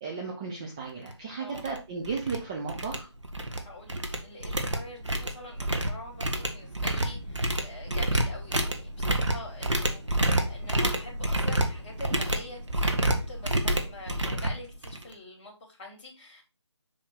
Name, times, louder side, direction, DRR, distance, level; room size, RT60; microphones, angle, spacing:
voice 1, 0.0-3.1, right 5 dB, 10° right, -2 dB, 0.4 m, -35 dB
sound 1, 1.0-1.1 1.5-1.8 2.0-2.4 2.7-3.6 3.9-15.1, right 1 dB, 85° right, 1.4 m, -28 dB
voice 2, 3.6-16.4, left 1 dB, 25° left, -3 dB, 2.2 m, -45 dB
5.7 x 4.5 x 4.2 m, 0.30 s
figure-of-eight pair, 155°, 15 cm